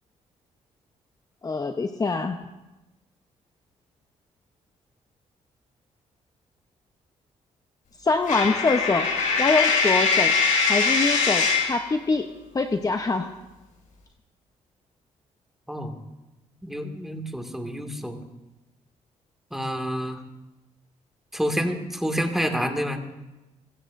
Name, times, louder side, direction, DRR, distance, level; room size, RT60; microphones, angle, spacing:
voice 1, 1.4-2.4 8.0-9.1 9.4-10.4 10.7-12.3 12.5-13.3, left 3 dB, 30° left, 5 dB, 0.9 m, -24 dB
Coin (dropping), 8.3-11.8, left 5 dB, 80° left, 6.0 m, -22 dB
voice 2, 16.6-18.2 19.5-20.2 21.3-23.0, equal, 5° right, 3 dB, 2.2 m, -28 dB
23.5 x 15.0 x 2.7 m, 1.0 s
cardioid pair, 75°, 13 cm